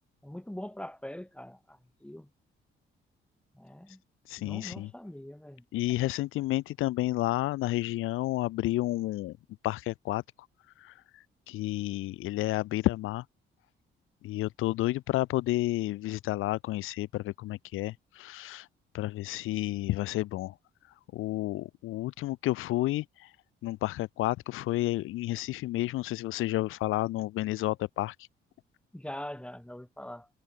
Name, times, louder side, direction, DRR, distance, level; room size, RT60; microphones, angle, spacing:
voice 1, 0.2-2.3 3.5-4.0 4.4-5.6 28.9-30.3, left 1 dB, 5° left, 5.7 m, -42 dB
voice 2, 4.3-4.9 5.7-9.4 9.6-10.2 10.8-13.2 14.2-18.7 18.9-20.5 21.1-23.3 23.6-28.2, left 16 dB, 85° left, 0.6 m, -31 dB
cardioid pair, 85°, 20 cm